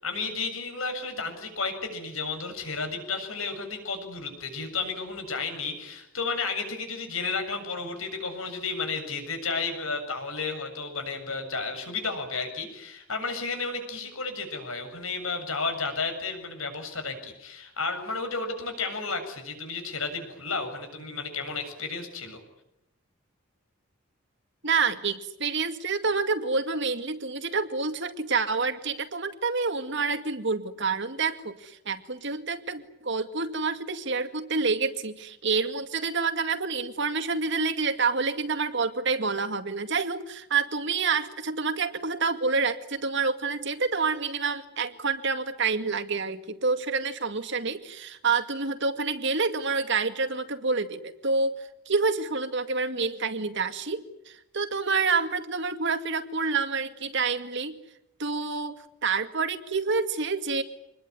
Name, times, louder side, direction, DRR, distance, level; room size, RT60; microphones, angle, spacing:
voice 1, 0.0-22.4, left 4 dB, 85° left, 6 dB, 7.4 m, -32 dB
voice 2, 24.6-57.8 58.2-60.6, right 4 dB, 60° right, 8 dB, 2.2 m, -28 dB
26.5 x 21.0 x 9.7 m, 0.84 s
head